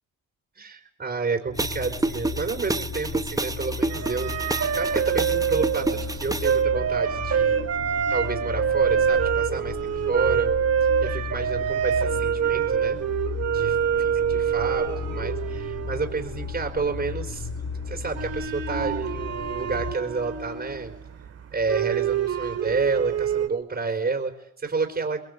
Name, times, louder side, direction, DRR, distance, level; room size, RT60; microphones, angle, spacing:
voice 1, 0.5-7.7 8.1-10.5 10.8-13.0 13.5-17.5 17.9-20.9 21.5-25.2, right 4 dB, 30° right, 2 dB, 4.2 m, -30 dB
sound 1, 1.5-20.0, left 5 dB, 60° left, 2.3 m, -35 dB
sound 2, 1.6-6.6, right 2 dB, 10° right, 0.9 m, -29 dB
sound 3, 3.9-23.5, right 8 dB, 55° right, 2.4 m, -26 dB
24.5 x 21.5 x 8.0 m, 0.80 s
cardioid pair, 90°, 30 cm